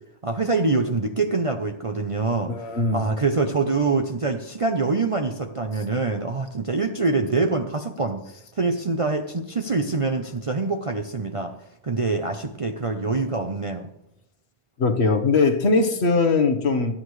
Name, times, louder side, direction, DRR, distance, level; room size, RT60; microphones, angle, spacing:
voice 1, 0.2-2.5 2.9-8.2 8.5-11.5 11.8-13.9, right 3 dB, 35° right, 4 dB, 0.7 m, -25 dB
voice 2, 2.5-3.0 14.8-16.9, left 3 dB, 70° left, 6 dB, 1.5 m, -20 dB
24.5 x 8.8 x 3.2 m, 0.84 s
omnidirectional pair, 1.1 m